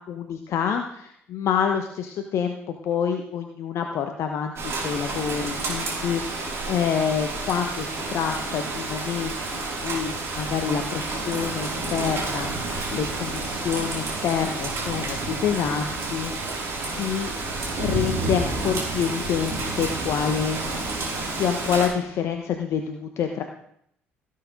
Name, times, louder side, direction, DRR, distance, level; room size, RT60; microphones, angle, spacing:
voice 1, 0.1-17.3 17.8-20.8 21.2-23.4, left 7 dB, 50° left, 5 dB, 1.1 m, -27 dB
Rain, 4.6-21.9, right 2 dB, 45° right, 5.0 m, -30 dB
17.0 x 8.6 x 3.8 m, 0.70 s
figure-of-eight pair, 50°, 6 cm